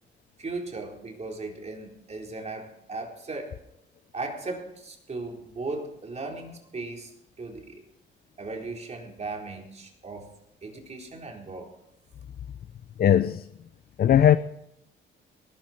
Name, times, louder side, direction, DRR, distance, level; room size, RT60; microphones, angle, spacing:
voice 1, 0.4-3.6 4.1-7.8 8.4-10.3 10.6-11.7, right 3 dB, 35° right, 4.2 m, -37 dB
voice 2, 13.0-13.5 14.0-14.4, left 10 dB, 50° left, 0.6 m, -18 dB
19.0 x 12.5 x 4.5 m
cardioid pair, 90°, 20 cm